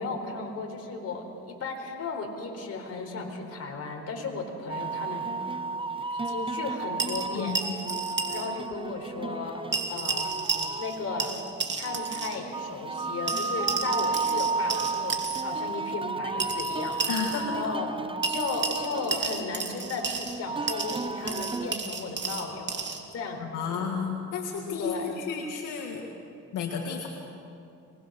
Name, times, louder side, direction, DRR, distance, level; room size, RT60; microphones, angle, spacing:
voice 1, 0.0-5.3 6.1-7.6 8.3-9.6 9.9-10.4 10.8-11.4 11.8-17.1 17.5-17.9 18.3-23.9 24.8-25.1, left 4 dB, 55° left, 2 dB, 4.2 m, -35 dB
sound 1, 4.7-21.7, right 4 dB, 15° right, 0.7 m, -33 dB
sound 2, 7.0-8.5 8.7-8.8 9.7-10.9 11.2-12.4 13.3-15.4 16.4-17.4 18.2-20.4 20.7-23.0, right 4 dB, 40° right, 2.4 m, -32 dB
voice 2, 17.1-17.7 23.4-26.0 26.5-27.1, left 6 dB, 90° left, 1 dB, 2.0 m, -32 dB
24.5 x 20.5 x 6.5 m, 2.6 s
cardioid pair, 90°, 30 cm